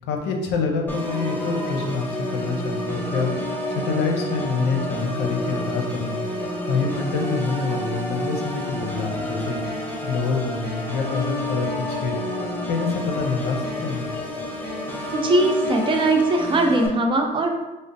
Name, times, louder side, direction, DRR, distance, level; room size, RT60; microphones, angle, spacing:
voice 1, 0.1-3.3 3.7-6.2 6.7-12.1 12.7-14.1, left 4 dB, 85° left, 3 dB, 0.6 m, -26 dB
Organ, 0.9-16.9, left 1 dB, 10° left, 0.7 m, -29 dB
voice 2, 15.1-17.5, right 2 dB, 30° right, 3 dB, 0.5 m, -20 dB
4.9 x 2.0 x 2.6 m, 1.1 s
cardioid pair, 110°, 17 cm